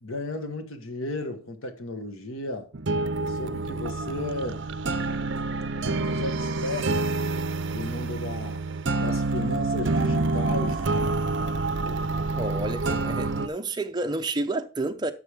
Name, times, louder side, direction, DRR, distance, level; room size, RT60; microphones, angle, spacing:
voice 1, 0.0-2.7 3.2-4.6 5.8-7.1 7.7-8.6 9.0-10.8, left 2 dB, 75° left, 1.4 m, -34 dB
sound 1, 2.7-13.5, right 3 dB, 55° right, 0.6 m, -27 dB
voice 2, 12.3-15.1, right 2 dB, 20° right, 0.6 m, -30 dB
11.5 x 6.9 x 3.5 m
head